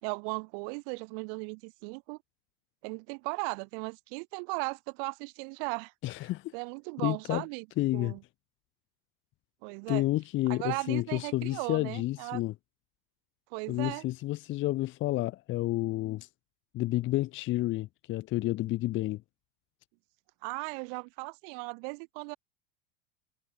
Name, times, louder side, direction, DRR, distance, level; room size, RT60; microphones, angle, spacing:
voice 1, 0.0-2.2 2.8-5.9 6.5-7.7 7.9-8.2 9.6-10.1 10.5-12.4 13.5-14.0 20.4-22.4, right 40 dB or more, 60° right, 4.5 m, -37 dB
voice 2, 6.0-6.4 7.0-7.4 7.8-8.1 9.9-12.5 13.7-16.3 16.7-19.2, left 17 dB, 40° left, 0.9 m, -30 dB
hypercardioid pair, 95°, 30 cm